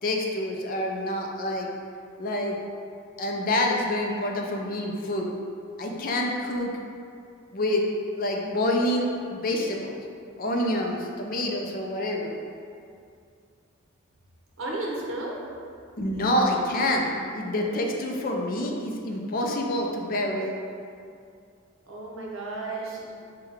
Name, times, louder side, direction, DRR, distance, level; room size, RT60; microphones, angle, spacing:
voice 1, 0.0-1.7 2.2-2.6 3.2-5.3 5.8-6.7 7.5-7.8 8.2-9.9 10.4-12.4 16.0-20.5, left 1 dB, 45° left, 0 dB, 0.4 m, -27 dB
voice 2, 14.6-15.3 21.9-23.1, right 2 dB, 75° right, -3 dB, 0.8 m, -33 dB
5.4 x 2.2 x 3.4 m, 2.4 s
head